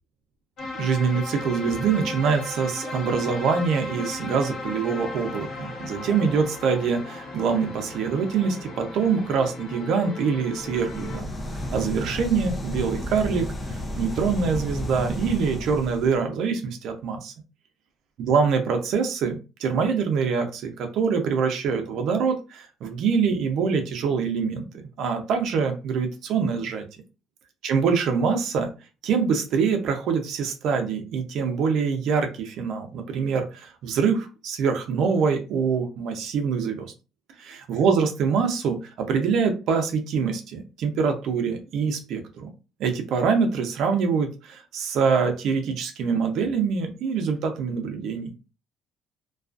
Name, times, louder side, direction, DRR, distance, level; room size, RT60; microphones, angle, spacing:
sound 1, 0.6-11.2, left 2 dB, 50° left, 0.7 m, -36 dB
voice 1, 0.7-11.3 11.7-17.3 18.2-24.7 25.0-26.8 27.6-28.7 29.0-36.9 37.4-42.5 42.8-48.3, right 5 dB, 65° right, 5 dB, 0.6 m, -24 dB
sound 2, 10.5-16.2, left 1 dB, 20° left, 0.4 m, -32 dB
2.3 x 2.3 x 2.4 m, 0.31 s
cardioid pair, 155°, 0 cm